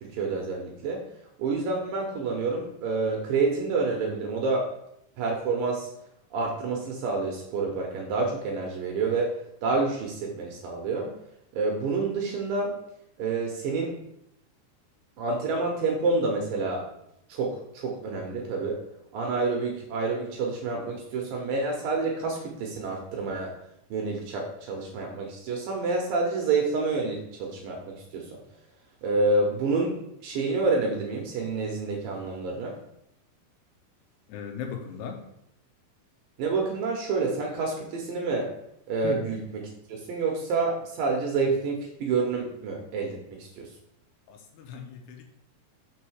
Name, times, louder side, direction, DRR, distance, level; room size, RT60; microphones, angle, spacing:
voice 1, 0.0-1.0 1.4-4.7 5.2-5.9 6.3-9.3 9.6-11.1 11.5-12.7 13.2-13.9 15.2-16.8 17.3-18.8 19.1-23.5 23.9-28.4 29.0-29.9 30.2-32.8 36.4-38.5 38.9-39.6 39.9-43.7, right 3 dB, 75° right, 0 dB, 2.2 m, -28 dB
voice 2, 34.3-35.2 39.0-39.2 44.3-45.2, left 7 dB, 80° left, 4 dB, 2.7 m, -37 dB
6.3 x 3.9 x 6.1 m, 0.79 s
omnidirectional pair, 4.8 m